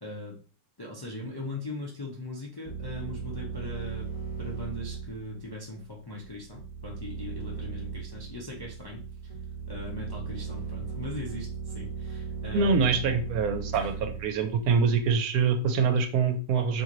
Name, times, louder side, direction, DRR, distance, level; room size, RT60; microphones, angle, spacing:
voice 1, 0.0-0.4 0.8-4.1 4.4-9.3 9.7-12.9 13.7-13.9, left 2 dB, 30° left, -3 dB, 0.4 m, -40 dB
sound 1, 2.6-15.1, right 5 dB, 25° right, 1.0 m, -37 dB
voice 2, 12.5-16.8, right 5 dB, 75° right, 7 dB, 1.1 m, -25 dB
3.0 x 2.8 x 3.8 m, 0.38 s
omnidirectional pair, 1.6 m